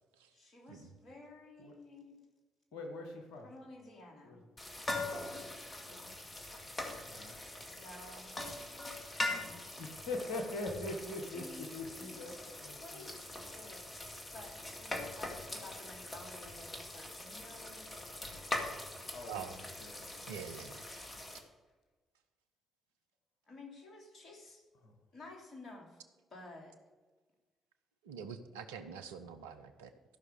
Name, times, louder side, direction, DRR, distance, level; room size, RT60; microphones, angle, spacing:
voice 1, 0.3-2.2 3.4-4.4 7.7-8.4 9.8-9.9 11.2-12.3 12.6-18.0 23.5-24.6 25.1-26.0 26.3-26.8, left 2 dB, 50° left, 0 dB, 3.1 m, -53 dB
voice 2, 2.7-3.5 4.2-4.5 5.8-6.4 6.8-7.4 9.8-13.1 19.1-20.4 24.8-24.9, left 2 dB, 70° left, 4 dB, 1.4 m, -43 dB
sound 1, 4.6-21.4, left 2 dB, 25° left, 2.3 m, -42 dB
voice 3, 20.3-20.8 28.1-29.9, right 7 dB, 80° right, 7 dB, 0.7 m, -45 dB
14.0 x 6.0 x 6.5 m, 1.3 s
figure-of-eight pair, 40°, 0 cm